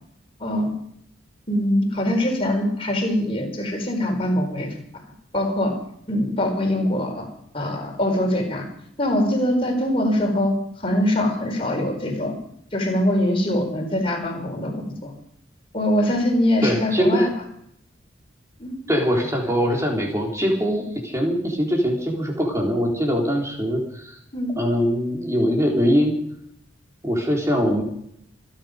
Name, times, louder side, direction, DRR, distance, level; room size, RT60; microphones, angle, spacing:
voice 1, 1.5-4.7 5.3-5.8 6.1-7.2 7.5-8.6 9.0-10.6 10.8-12.3 12.7-15.1 15.7-17.3 18.6-18.8 24.3-24.5, left 1 dB, 30° left, 1 dB, 4.7 m, -23 dB
voice 2, 16.6-17.3 18.9-24.2 24.6-26.2 27.0-27.8, equal, 15° right, 0 dB, 4.0 m, -22 dB
27.0 x 10.0 x 5.2 m, 0.72 s
head